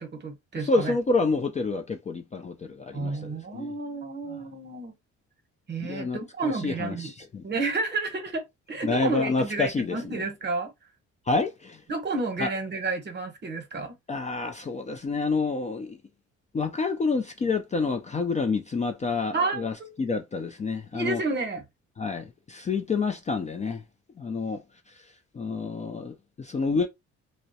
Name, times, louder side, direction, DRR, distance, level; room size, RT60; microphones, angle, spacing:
voice 1, 0.0-0.9 2.9-4.9 5.7-7.1 7.4-10.7 11.9-13.9 19.3-19.9 20.9-21.6, right 3 dB, 35° right, 0.9 m, -31 dB
voice 2, 0.6-3.7 4.3-4.4 5.8-7.4 8.8-10.2 11.3-11.8 12.4-12.5 14.1-16.0 16.5-21.2 22.0-23.8 24.2-24.6 24.9-25.1 25.3-26.9, left 4 dB, 25° left, 0.3 m, -28 dB
2.2 x 2.0 x 2.7 m
cardioid pair, 90°, 30 cm